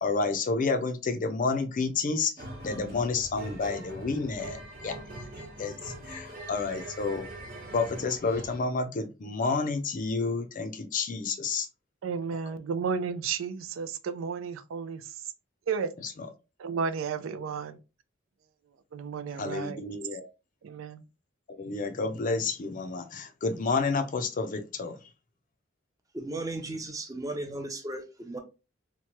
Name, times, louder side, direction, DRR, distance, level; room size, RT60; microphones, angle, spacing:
voice 1, 0.0-2.3 2.6-5.0 5.6-7.3 7.7-11.7 16.0-16.3 19.4-20.3 21.5-25.0, left 4 dB, 40° left, 0.4 m, -30 dB
sound 1, 2.4-8.7, right 1 dB, 50° right, 0.9 m, -42 dB
voice 2, 12.0-15.0 15.7-15.9 16.6-17.8 18.9-19.8 20.6-21.0, right 6 dB, 90° right, 0.4 m, -32 dB
voice 3, 26.1-28.4, right 2 dB, 20° right, 0.6 m, -35 dB
2.9 x 2.2 x 2.9 m
head